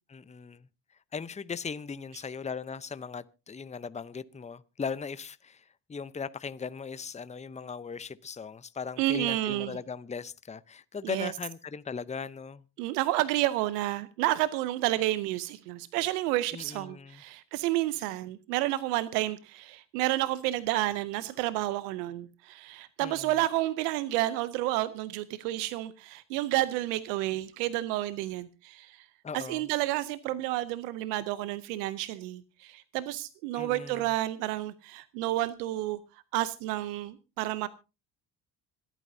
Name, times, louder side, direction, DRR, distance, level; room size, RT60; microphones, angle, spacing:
voice 1, 0.1-0.7 1.1-12.6 16.5-17.2 23.0-23.4 29.2-29.6 33.5-34.1, left 5 dB, 15° left, 0.7 m, -38 dB
voice 2, 9.0-9.8 11.0-11.3 12.8-29.1 29.3-36.0 36.3-37.7, right 16 dB, 90° right, 0.7 m, -30 dB
26.0 x 9.1 x 2.7 m
hypercardioid pair, 60°, 47 cm